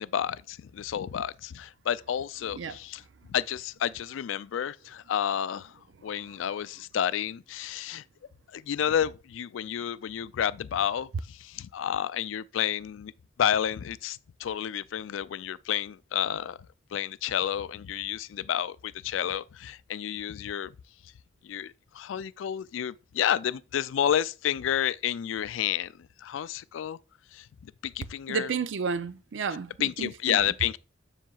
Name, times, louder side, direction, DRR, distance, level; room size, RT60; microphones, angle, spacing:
voice 1, 0.0-3.0 3.3-5.7 6.0-8.0 8.5-13.1 13.4-16.6 16.9-20.7 21.4-25.9 26.2-27.0 27.3-28.5 29.8-30.8, left 9 dB, 85° left, 0.3 m, -30 dB
voice 2, 28.3-30.5, right 5 dB, 70° right, 0.5 m, -32 dB
7.4 x 6.4 x 2.3 m
head